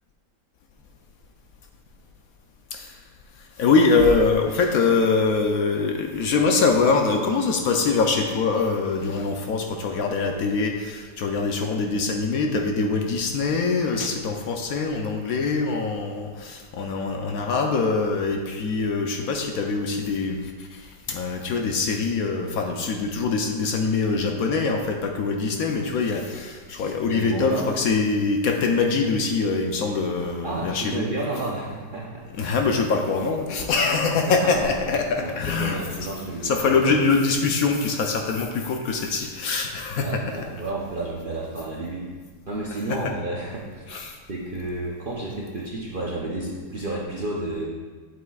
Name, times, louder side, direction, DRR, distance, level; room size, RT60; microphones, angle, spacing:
voice 1, 3.4-31.1 32.3-35.8 36.4-40.2 42.9-43.0 43.9-44.2, left 4 dB, 70° left, 3 dB, 0.9 m, -23 dB
voice 2, 27.1-27.7 30.4-32.3 34.3-34.7 35.2-37.1 40.0-42.1 42.5-43.8 44.3-47.6, right 2 dB, 50° right, -4 dB, 0.6 m, -31 dB
8.1 x 7.9 x 2.3 m, 1.5 s
omnidirectional pair, 1.8 m